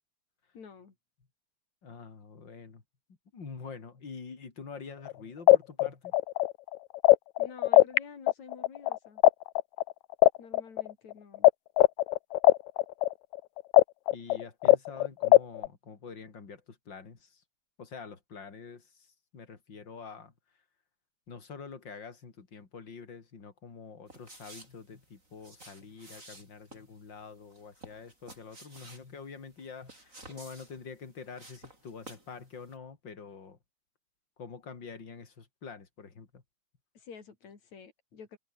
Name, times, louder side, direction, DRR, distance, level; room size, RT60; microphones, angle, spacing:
voice 1, 0.5-1.0 7.4-9.2 10.4-11.5 37.0-38.4, left 6 dB, 60° left, 5.4 m, -49 dB
voice 2, 1.8-2.8 3.3-6.2 14.1-17.4 17.8-19.1 19.3-20.3 21.3-33.6 34.4-36.4, left 5 dB, 35° left, 3.8 m, -46 dB
sound 1, 5.1-5.2 5.5-8.0 8.3-11.5 11.8-15.7, left 17 dB, 75° left, 1.8 m, -20 dB
sound 2, 24.1-32.4 32.6-32.8, right 2 dB, 20° right, 7.2 m, -52 dB
omnidirectional pair, 3.7 m